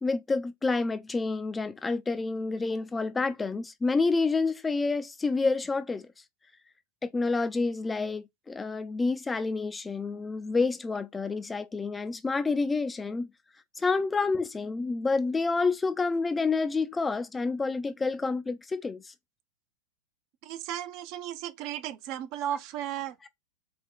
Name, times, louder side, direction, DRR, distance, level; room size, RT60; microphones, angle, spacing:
voice 1, 0.0-6.1 7.0-13.3 13.8-19.1, left 3 dB, 10° left, 0.4 m, -28 dB
voice 2, 20.4-23.3, right 11 dB, 40° right, 0.5 m, -35 dB
5.0 x 2.2 x 3.8 m
figure-of-eight pair, 90°, 0 cm